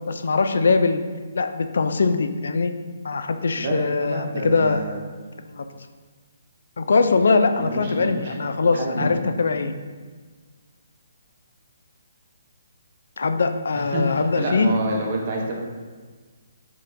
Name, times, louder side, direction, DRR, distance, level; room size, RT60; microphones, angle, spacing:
voice 1, 0.1-1.0 1.3-2.7 3.0-4.8 5.5-5.6 6.8-9.7 13.2-14.7, left 4 dB, 75° left, 9 dB, 0.3 m, -21 dB
voice 2, 3.6-5.0 7.6-8.3 8.7-9.2 13.9-15.6, right 1 dB, 40° right, 0 dB, 0.7 m, -28 dB
4.5 x 3.6 x 2.6 m, 1.5 s
hypercardioid pair, 165°, 0 cm